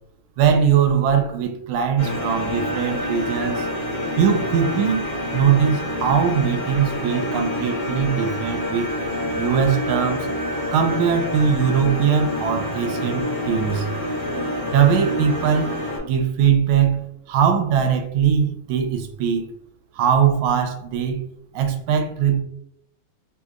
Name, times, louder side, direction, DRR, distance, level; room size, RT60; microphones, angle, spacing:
voice 1, 0.4-3.7 4.2-5.0 5.3-8.9 9.4-10.3 10.7-13.9 14.7-15.8 16.0-19.5 19.9-21.2 21.5-22.4, right 7 dB, 85° right, 6 dB, 1.4 m, -20 dB
sound 1, 2.0-16.0, left 1 dB, 30° left, 1.0 m, -27 dB
3.7 x 2.8 x 2.4 m, 0.71 s
omnidirectional pair, 2.3 m